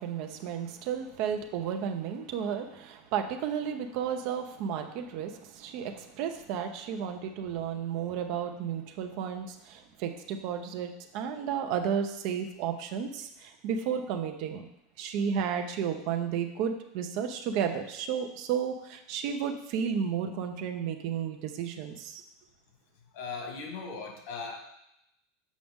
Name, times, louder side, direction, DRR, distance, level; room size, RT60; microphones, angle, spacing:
voice 1, 0.0-14.6 15.0-22.2, right 7 dB, 55° right, 5 dB, 0.8 m, -33 dB
voice 2, 23.1-24.6, left 4 dB, 70° left, 2 dB, 1.8 m, -38 dB
7.4 x 5.2 x 3.6 m, 0.82 s
supercardioid pair, 135°, 0 cm